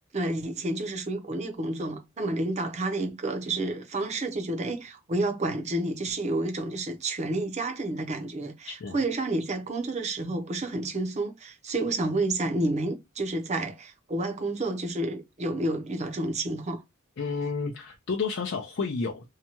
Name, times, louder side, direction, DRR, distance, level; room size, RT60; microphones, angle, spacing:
voice 1, 0.1-16.8, right 2 dB, 35° right, 0.6 m, -30 dB
voice 2, 8.7-9.0 17.2-19.3, left 4 dB, 55° left, 0.5 m, -31 dB
2.8 x 2.2 x 2.8 m
head